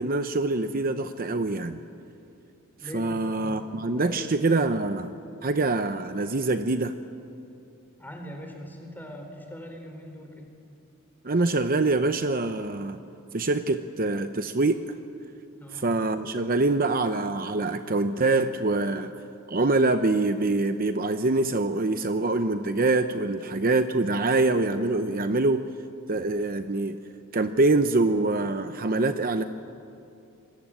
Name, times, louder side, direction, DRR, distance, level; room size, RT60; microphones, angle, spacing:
voice 1, 0.0-1.8 2.9-5.1 5.4-6.9 11.2-13.0 13.3-14.8 15.7-19.1 19.5-25.6 26.1-27.0 27.3-29.4, right 2 dB, 40° right, 9 dB, 0.8 m, -25 dB
voice 2, 2.8-4.5 8.0-10.5 15.6-15.9, equal, 10° left, 3 dB, 4.3 m, -41 dB
27.5 x 22.5 x 8.9 m, 2.7 s
head